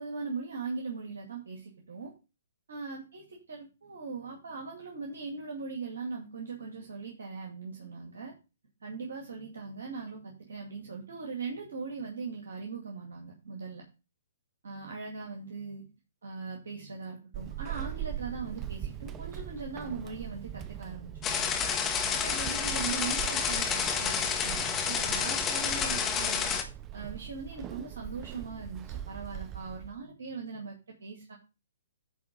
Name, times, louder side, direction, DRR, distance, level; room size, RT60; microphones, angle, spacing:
voice 1, 0.0-2.1 2.7-8.4 8.8-13.9 14.6-15.9 16.2-21.5 22.1-26.5 26.9-31.4, right 4 dB, 70° right, 1 dB, 2.2 m, -40 dB
Walk footsteps / Squeak, 17.3-30.0, right 11 dB, 25° right, 0.7 m, -41 dB
sound 1, 21.2-26.6, left 7 dB, 20° left, 1.6 m, -29 dB
10.0 x 3.7 x 6.7 m, 0.30 s
hypercardioid pair, 130°, 0 cm